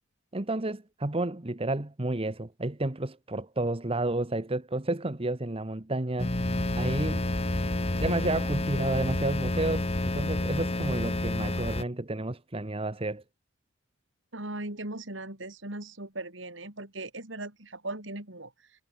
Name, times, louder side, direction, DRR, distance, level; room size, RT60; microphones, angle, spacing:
voice 1, 0.3-6.5 6.8-7.2 8.0-13.2, right 2 dB, 30° right, 1.2 m, -31 dB
sound 1, 6.2-11.8, left 1 dB, 30° left, 1.6 m, -29 dB
voice 2, 14.3-18.5, right 2 dB, 70° right, 4.9 m, -38 dB
head